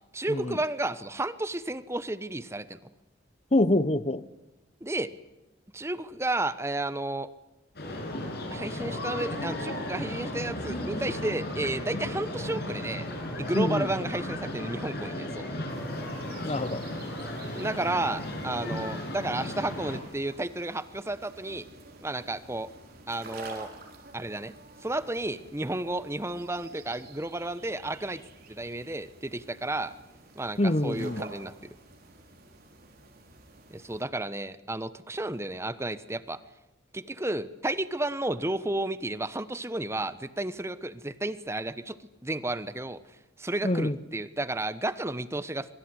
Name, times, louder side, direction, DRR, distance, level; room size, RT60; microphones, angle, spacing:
voice 1, 0.1-2.9 4.8-5.1 5.7-7.3 8.5-13.0 13.4-15.5 17.5-21.7 22.0-22.7 23.1-23.7 24.1-24.5 24.8-28.2 28.5-29.9 30.3-31.7 33.7-36.4 36.9-43.0 43.4-45.7, right 2 dB, 15° right, 1.1 m, -32 dB
voice 2, 3.5-4.2 13.5-13.9 16.4-16.8 30.6-31.2 43.6-43.9, left 1 dB, 35° left, 1.0 m, -25 dB
sound 1, 7.7-20.0, left 1 dB, 55° left, 7.7 m, -35 dB
sound 2, 15.7-34.0, right 3 dB, 50° right, 5.1 m, -50 dB
25.5 x 23.5 x 9.8 m
head